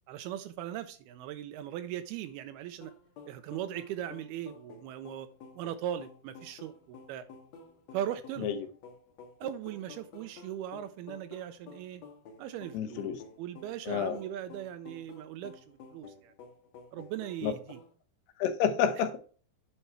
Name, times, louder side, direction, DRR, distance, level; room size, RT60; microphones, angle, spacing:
voice 1, 0.1-2.9 3.3-5.3 5.5-7.2 7.9-8.5 9.4-12.0 12.4-13.1 13.4-16.3 16.9-17.8, right 11 dB, 85° right, 2.4 m, -39 dB
sound 1, 2.8-17.9, left 4 dB, 60° left, 1.9 m, -52 dB
voice 2, 12.7-13.2 13.9-14.2 17.4-17.5 18.4-19.3, left 8 dB, 80° left, 2.9 m, -29 dB
9.0 x 5.5 x 4.5 m
omnidirectional pair, 4.8 m